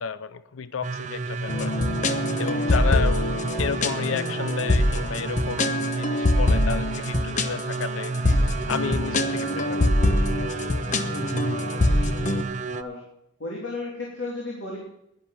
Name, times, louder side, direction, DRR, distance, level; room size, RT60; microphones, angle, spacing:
voice 1, 0.0-1.8 2.4-3.2 3.6-8.2 8.7-9.8, left 6 dB, 90° left, 15 dB, 0.6 m, -31 dB
sound 1, 0.8-12.8, right 3 dB, 35° right, 0.5 m, -31 dB
sound 2, 1.5-12.4, left 1 dB, 40° left, 0.9 m, -24 dB
voice 2, 2.3-2.8 9.4-9.7 11.1-11.9 12.7-13.0 13.4-14.8, left 2 dB, 65° left, -3 dB, 3.2 m, -35 dB
11.0 x 10.5 x 5.9 m, 0.78 s
head